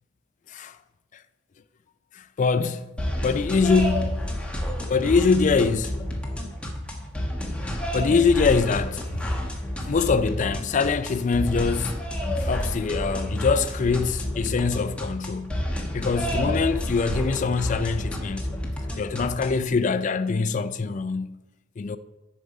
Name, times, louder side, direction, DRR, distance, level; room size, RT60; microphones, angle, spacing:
voice 1, 2.1-2.9 3.2-4.3 4.9-5.9 7.9-9.1 9.9-12.0 12.4-15.6 15.9-18.5 19.0-21.3 21.8-22.0, left 4 dB, 40° left, 0.4 m, -23 dB
sound 1, 3.0-19.7, equal, 5° left, 1.1 m, -30 dB
9.9 x 5.4 x 4.9 m
head